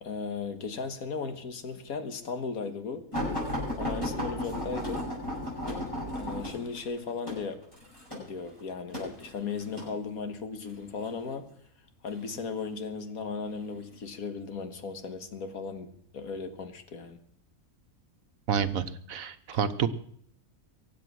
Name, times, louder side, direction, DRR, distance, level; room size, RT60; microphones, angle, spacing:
voice 1, 0.0-3.1 3.8-5.0 6.1-7.6 8.2-11.5 12.0-17.2, left 5 dB, 80° left, 8 dB, 1.9 m, -36 dB
sound 1, 3.1-9.9 10.7-11.1 12.1-12.7 13.5-13.6 14.0-14.1, left 1 dB, 20° left, 8.2 m, -34 dB
voice 2, 18.5-19.9, right 7 dB, 70° right, 11 dB, 1.4 m, -29 dB
24.0 x 8.5 x 6.2 m, 0.64 s
omnidirectional pair, 1.5 m